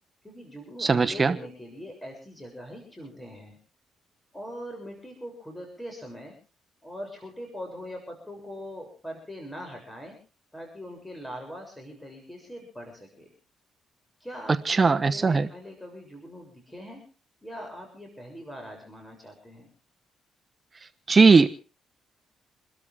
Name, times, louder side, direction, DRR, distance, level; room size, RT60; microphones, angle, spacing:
voice 1, 0.2-3.6 4.3-6.3 6.8-10.2 10.5-13.3 14.2-17.0 17.4-19.7, equal, 10° left, 3 dB, 7.1 m, -41 dB
voice 2, 0.8-1.3 14.7-15.5 21.1-21.5, right 4 dB, 30° right, 9 dB, 1.1 m, -19 dB
28.0 x 13.0 x 3.6 m, 0.36 s
cardioid pair, 90°, 0 cm